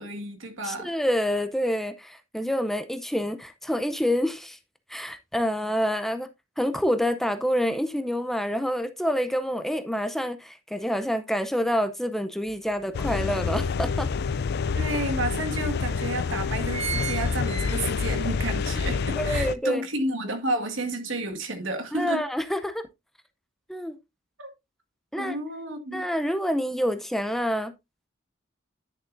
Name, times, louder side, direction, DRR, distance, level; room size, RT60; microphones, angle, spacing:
voice 1, 0.0-0.9 14.7-22.2 24.4-24.5 25.1-26.0, right 2 dB, 70° right, 1.8 m, -31 dB
voice 2, 0.6-4.6 4.9-6.3 6.6-14.1 19.2-19.8 21.9-22.8 23.7-24.0 25.1-25.4 25.9-27.7, equal, ahead, 0.5 m, -27 dB
sound 1, 12.5-12.6 13.0-14.2 14.9-15.0 15.2-15.3 16.0-16.2 16.4-18.3 18.7-18.8, right 6 dB, 35° right, 1.2 m, -35 dB
sound 2, 12.9-19.6, left 5 dB, 55° left, 0.3 m, -27 dB
10.5 x 6.7 x 2.6 m
head